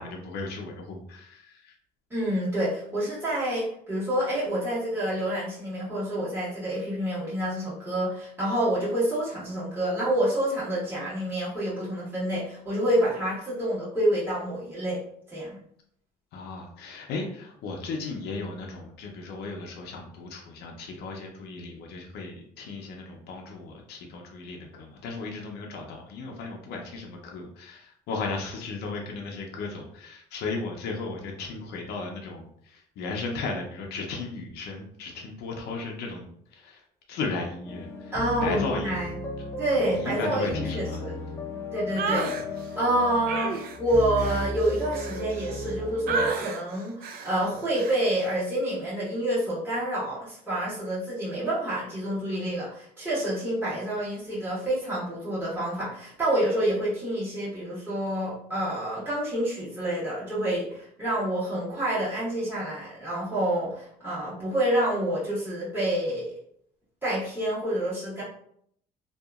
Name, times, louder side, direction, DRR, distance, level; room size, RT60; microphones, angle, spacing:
voice 1, 0.0-1.7 16.3-36.8 37.1-38.1 38.4-39.0 39.9-41.0, left 3 dB, 75° left, 1 dB, 0.5 m, -35 dB
voice 2, 2.1-15.0 15.3-15.6 38.1-39.1 39.6-41.1 41.7-42.3 42.8-66.3 67.0-68.2, right 1 dB, 10° right, -10 dB, 1.3 m, -28 dB
sound 1, 37.7-46.3, left 2 dB, 15° left, 0.5 m, -35 dB
sound 2, 42.0-42.4 43.3-45.7 46.1-46.6 47.0-47.3 47.7-48.0, right 5 dB, 65° right, 0.4 m, -31 dB
2.8 x 2.4 x 2.3 m, 0.67 s
cardioid pair, 110°, 17 cm